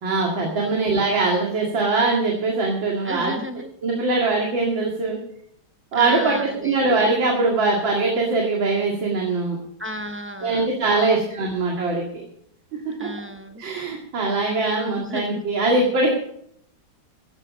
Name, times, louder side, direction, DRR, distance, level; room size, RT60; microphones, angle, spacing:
voice 1, 0.0-3.4 3.8-5.2 5.9-9.6 10.4-12.2 12.9-13.1 13.6-16.1, right 3 dB, 80° right, -1 dB, 2.9 m, -22 dB
voice 2, 3.0-3.7 5.9-6.8 9.8-10.7 10.9-11.2 13.0-13.6 14.8-15.2, equal, 10° right, 7 dB, 0.6 m, -33 dB
15.0 x 11.0 x 5.1 m, 0.68 s
omnidirectional pair, 2.0 m